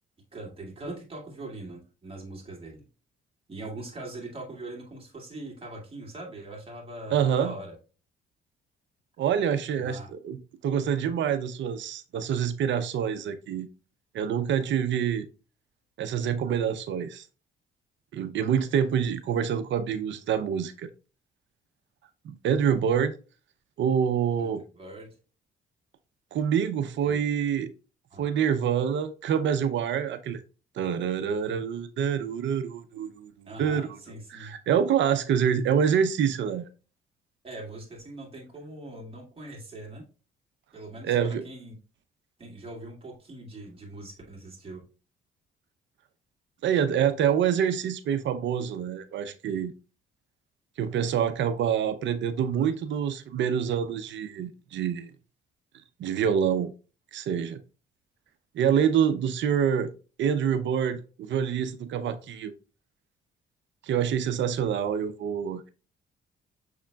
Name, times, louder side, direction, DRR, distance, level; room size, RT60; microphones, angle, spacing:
voice 1, 0.3-2.8 3.5-7.8 9.8-10.1 24.4-25.2 27.0-27.2 28.1-28.2 33.5-34.5 37.4-40.1 40.7-41.8 42.4-44.8, right 2 dB, 30° right, 2.0 m, -41 dB
voice 2, 7.1-7.6 9.2-10.4 10.6-13.7 14.1-15.3 16.0-17.3 18.1-20.9 22.2-23.1 23.8-24.6 26.3-27.7 28.2-30.4 30.8-34.0 34.3-36.7 41.0-41.4 46.6-49.7 50.8-55.1 56.0-56.7 57.1-57.6 58.5-59.9 60.2-62.5 63.8-65.7, right 8 dB, 70° right, 0.6 m, -26 dB
6.4 x 3.6 x 2.3 m
cardioid pair, 90°, 20 cm